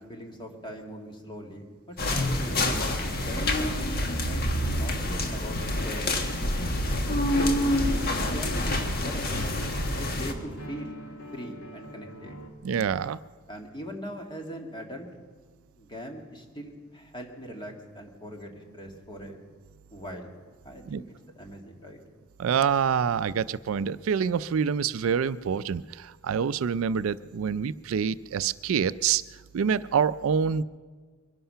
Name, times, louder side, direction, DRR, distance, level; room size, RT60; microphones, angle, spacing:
voice 1, 0.0-3.0 3.2-6.1 7.1-9.2 9.9-11.0 11.3-12.4 13.5-15.1 15.8-19.4 19.9-20.4 20.6-21.0 21.4-22.0, equal, 20° left, 2 dB, 2.0 m, -41 dB
sound 1, 2.0-10.3, left 1 dB, 45° left, 1.5 m, -27 dB
sound 2, 7.5-12.5, equal, 80° left, 2.2 m, -43 dB
voice 2, 12.6-13.2 20.9-21.0 22.4-29.2 29.5-30.6, right 7 dB, 65° right, 16 dB, 0.4 m, -26 dB
22.5 x 11.5 x 5.6 m, 1.5 s
head